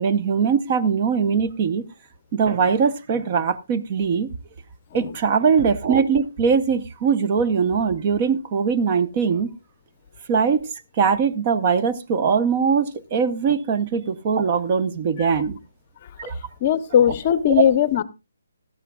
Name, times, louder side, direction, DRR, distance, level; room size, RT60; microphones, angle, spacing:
voice 1, 0.0-1.8 2.3-4.3 4.9-9.5 10.3-10.7 11.0-15.6 16.2-16.4 17.5-17.6, right 6 dB, 30° right, 0.8 m, -21 dB
voice 2, 16.6-18.0, left 9 dB, 30° left, 0.7 m, -18 dB
16.0 x 12.0 x 2.3 m
hypercardioid pair, 165°, 0 cm